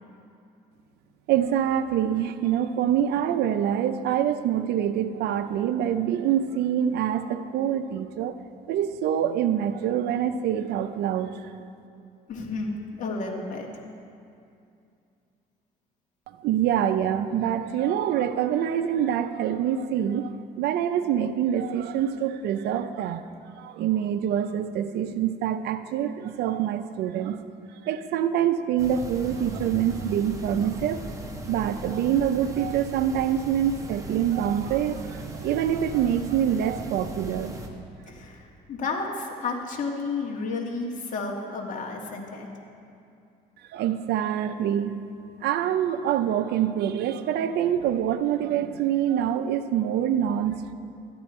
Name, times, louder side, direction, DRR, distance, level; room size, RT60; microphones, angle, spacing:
voice 1, 1.3-8.4 8.7-11.5 16.4-23.3 23.5-27.4 27.8-31.0 31.5-37.5 43.7-44.9 45.4-50.7, right 10 dB, 75° right, 10 dB, 0.5 m, -25 dB
voice 2, 12.3-13.8 38.1-42.5, left 3 dB, 50° left, -1 dB, 1.7 m, -32 dB
sound 1, 28.8-37.7, right 1 dB, 20° right, 1.1 m, -38 dB
13.0 x 10.0 x 4.3 m, 2.5 s
cardioid pair, 110°, 17 cm